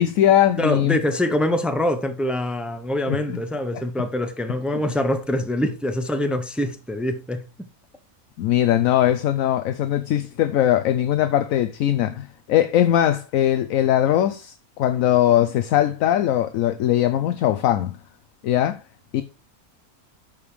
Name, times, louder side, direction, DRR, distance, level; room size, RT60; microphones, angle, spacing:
voice 1, 0.0-1.0 3.1-3.4 3.7-3.8 4.7-4.8 8.4-18.0 18.4-18.8 19.1-19.2, left 12 dB, 70° left, 1.0 m, -20 dB
voice 2, 0.6-7.4, left 1 dB, ahead, 0.3 m, -24 dB
13.5 x 5.0 x 3.2 m
omnidirectional pair, 1.5 m